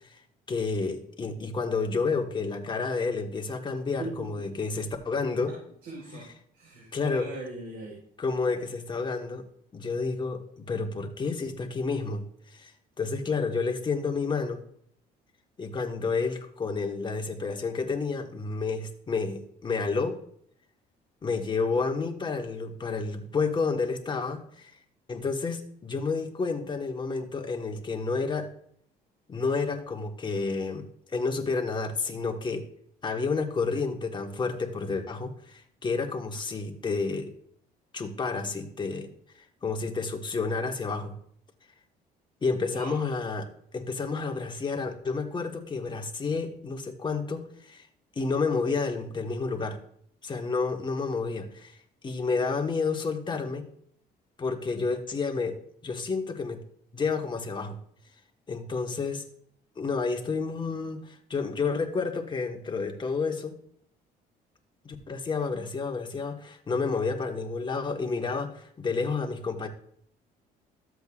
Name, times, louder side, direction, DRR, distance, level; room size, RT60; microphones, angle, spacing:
voice 1, 0.5-5.5 6.1-6.3 6.9-7.3 8.2-9.5 9.7-12.7 13.0-14.6 15.6-20.2 21.2-24.7 25.1-28.5 29.3-32.7 33.0-37.3 37.9-39.1 39.6-41.1 42.4-43.5 43.7-47.9 48.1-49.8 50.2-51.8 52.0-53.7 54.4-56.6 56.9-57.8 58.5-59.2 59.8-63.6 64.8-69.7, left 4 dB, 25° left, 3 dB, 1.5 m, -30 dB
voice 2, 5.8-6.2 6.5-7.9 42.7-43.0, right 3 dB, 65° right, -4 dB, 4.2 m, -39 dB
13.5 x 7.8 x 2.5 m, 0.65 s
cardioid pair, 110°, 17 cm